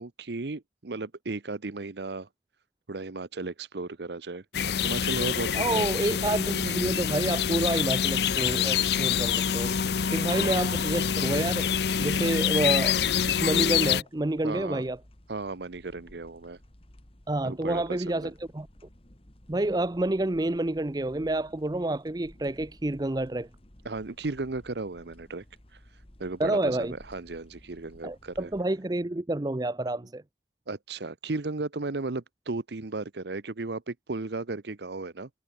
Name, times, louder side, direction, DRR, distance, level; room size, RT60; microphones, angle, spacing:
voice 1, 0.0-2.3 2.9-4.4 4.8-5.9 10.0-10.5 14.4-14.8 15.3-16.6 17.4-18.3 23.8-25.4 25.7-28.5 30.7-35.3, right 3 dB, 70° right, 0.9 m, -35 dB
sound 1, 4.5-14.0, left 8 dB, 70° left, 0.6 m, -26 dB
voice 2, 5.6-9.7 10.1-11.7 12.0-13.0 13.3-15.0 17.3-18.7 19.5-23.5 26.4-26.9 28.0-30.2, right 2 dB, 20° right, 0.6 m, -28 dB
sound 2, 9.2-28.6, left 1 dB, 30° left, 2.2 m, -56 dB
head